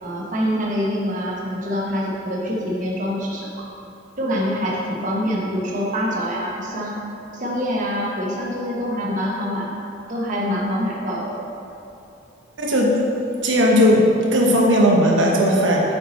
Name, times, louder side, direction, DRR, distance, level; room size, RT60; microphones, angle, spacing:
voice 1, 0.0-3.5 4.2-7.0 7.3-9.7 10.1-11.4, equal, 45° right, -3 dB, 1.0 m, -25 dB
voice 2, 12.6-12.9 13.4-14.0 14.3-15.9, equal, 85° right, -2 dB, 1.0 m, -16 dB
7.9 x 4.6 x 4.1 m, 2.7 s
head